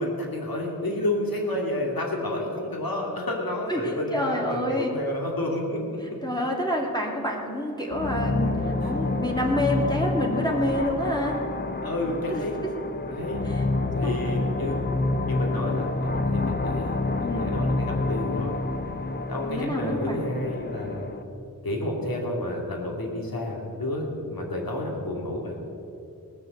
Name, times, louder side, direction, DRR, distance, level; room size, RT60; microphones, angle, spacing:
voice 1, 0.0-5.8 8.8-8.9 11.8-12.6 13.1-13.4 13.9-14.8 15.2-18.6 19.3-21.1 21.6-25.6, left 1 dB, 75° left, 0 dB, 2.6 m, -30 dB
voice 2, 3.7-4.9 6.2-11.4 12.3-12.7 13.4-13.6 14.0-14.1 17.2-17.5 19.4-20.2, left 1 dB, 10° left, -1 dB, 2.4 m, -28 dB
sound 1, 7.9-21.2, left 2 dB, 30° left, 0.8 m, -28 dB
19.0 x 6.8 x 7.8 m, 2.7 s
wide cardioid pair, 50°, 35 cm